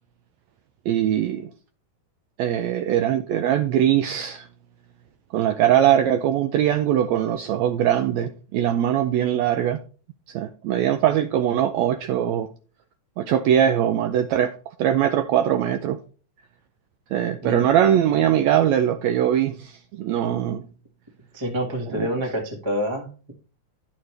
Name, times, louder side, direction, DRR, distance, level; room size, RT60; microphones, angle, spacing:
voice 1, 0.9-1.5 2.4-4.5 5.3-9.8 10.3-12.5 13.2-14.5 14.8-16.0 17.1-20.6 21.9-22.1, right 10 dB, 80° right, 1.6 m, -21 dB
voice 2, 21.3-23.3, equal, 45° right, 0.3 m, -27 dB
11.0 x 6.6 x 3.3 m
omnidirectional pair, 3.7 m